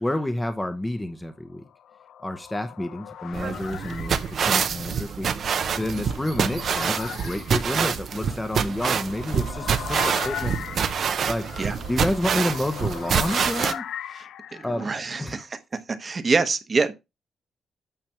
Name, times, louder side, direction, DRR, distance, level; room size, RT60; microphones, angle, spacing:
voice 1, 0.0-1.6 2.2-10.6 11.3-11.5 11.9-13.8 14.6-14.9 15.2-15.5, left 1 dB, 10° left, 0.7 m, -29 dB
sound 1, 1.6-15.1, left 10 dB, 75° left, 0.3 m, -39 dB
sound 2, 3.3-13.7, right 7 dB, 60° right, 0.7 m, -26 dB
voice 2, 14.1-15.5 15.9-16.9, right 4 dB, 35° right, 1.0 m, -26 dB
9.0 x 3.3 x 5.8 m
cardioid pair, 110°, 0 cm